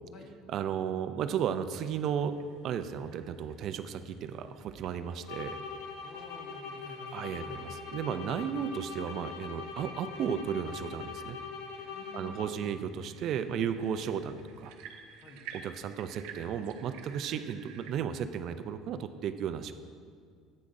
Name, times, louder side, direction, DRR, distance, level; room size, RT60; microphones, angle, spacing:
voice 1, 0.5-2.4 2.6-5.6 7.1-11.4 12.1-14.7 15.5-19.7, right 8 dB, 40° right, 10 dB, 0.3 m, -34 dB
sound 1, 1.7-18.0, right 7 dB, 80° right, 0.7 m, -54 dB
sound 2, 5.2-12.8, left 5 dB, 85° left, 0.7 m, -42 dB
voice 2, 6.0-7.7 11.9-13.1 15.2-15.7, left 1 dB, 40° left, 2 dB, 1.0 m, -50 dB
12.0 x 8.4 x 2.6 m, 2.1 s
cardioid pair, 180°, 0 cm